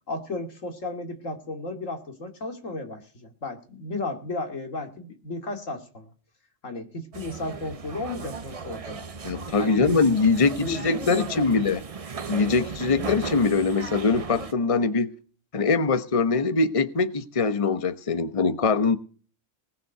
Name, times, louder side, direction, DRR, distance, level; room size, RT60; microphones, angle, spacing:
voice 1, 0.1-6.1 6.6-9.1 9.6-10.3 10.6-11.6, left 2 dB, 90° left, 2.8 m, -34 dB
sound 1, 7.1-14.5, right 5 dB, 35° right, 0.7 m, -36 dB
voice 2, 9.2-11.8 12.3-15.1 15.5-19.0, left 4 dB, 30° left, 1.0 m, -22 dB
19.5 x 7.5 x 6.6 m
omnidirectional pair, 1.3 m